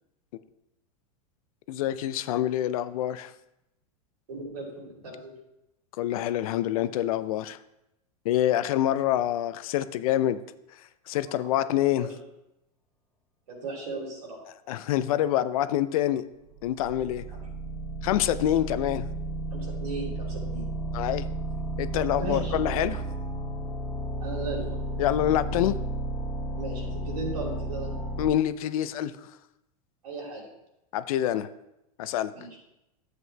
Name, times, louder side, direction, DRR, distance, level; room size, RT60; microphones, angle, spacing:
voice 1, 1.7-3.3 6.0-7.6 8.2-10.4 11.1-12.1 14.7-16.2 16.6-17.3 18.0-19.1 20.9-21.3 21.8-23.0 25.0-25.7 28.2-29.1 30.9-31.5 32.0-32.3, left 12 dB, 65° left, 13 dB, 0.5 m, -26 dB
voice 2, 4.3-5.3 8.5-8.6 11.3-11.5 11.9-12.1 13.5-14.4 18.3-18.6 19.5-20.7 22.2-22.6 24.2-24.8 26.6-27.9 30.0-30.4 32.3-32.5, right 2 dB, 75° right, -2 dB, 3.0 m, -37 dB
sound 1, 16.4-28.3, right 2 dB, 15° left, 1.0 m, -33 dB
11.0 x 7.7 x 2.2 m, 0.88 s
hypercardioid pair, 100°, 20 cm